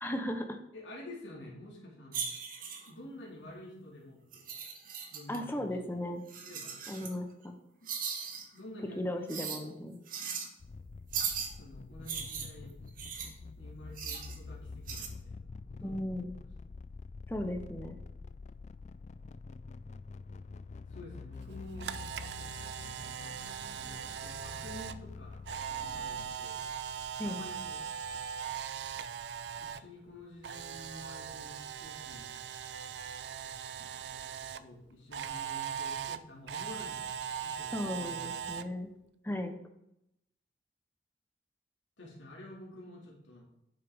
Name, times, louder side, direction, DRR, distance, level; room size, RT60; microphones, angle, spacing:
voice 1, 0.0-0.6 5.3-6.2 6.9-7.6 9.0-10.0 15.8-16.3 17.3-18.0 27.2-27.4 37.7-38.9 39.2-39.6, left 1 dB, 10° left, 5 dB, 0.8 m, -36 dB
voice 2, 0.7-2.3 2.9-4.5 5.1-5.7 6.4-6.7 7.8-7.9 8.5-9.8 11.6-12.8 13.6-15.5 15.7-15.9 16.6-16.7 20.9-22.0 23.7-25.4 25.8-26.6 27.2-27.8 29.6-32.3 33.8-34.1 34.6-37.1 37.4-38.8 42.0-43.4, left 1 dB, 80° left, -3 dB, 2.3 m, -49 dB
sound 1, 2.1-2.9 4.3-5.4 6.3-7.1 7.9-8.4 9.3-9.6 10.1-10.5 11.1-11.5 12.1-13.3 14.0-14.4 14.9-15.1, right 7 dB, 50° right, 1.2 m, -38 dB
sound 2, 10.6-26.4, left 4 dB, 40° left, 0.3 m, -47 dB
Camera, 21.5-29.8 30.1-34.6 35.1-38.6, right 8 dB, 65° right, 0.4 m, -40 dB
9.1 x 7.5 x 3.5 m, 0.82 s
head